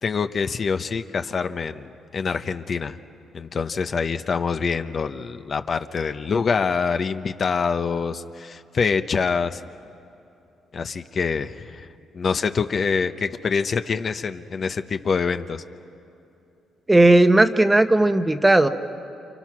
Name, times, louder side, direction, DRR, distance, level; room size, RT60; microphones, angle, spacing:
voice 1, 0.0-3.0 3.3-9.6 10.7-11.9 12.1-15.6, left 5 dB, 45° left, 9 dB, 0.9 m, -25 dB
voice 2, 16.9-18.7, right 2 dB, 15° right, 9 dB, 1.1 m, -16 dB
29.0 x 27.5 x 6.1 m, 2.7 s
cardioid pair, 90°, 0 cm